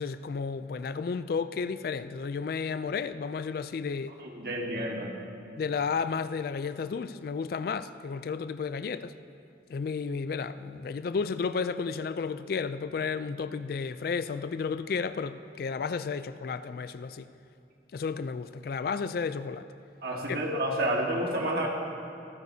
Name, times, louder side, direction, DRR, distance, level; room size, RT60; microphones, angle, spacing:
voice 1, 0.0-4.1 5.6-9.1 9.7-17.3 17.9-19.7 20.3-20.4, left 5 dB, 50° left, 0.3 m, -32 dB
voice 2, 4.2-5.2 20.0-21.7, right 1 dB, 55° right, 1.7 m, -30 dB
25.5 x 9.2 x 2.7 m
head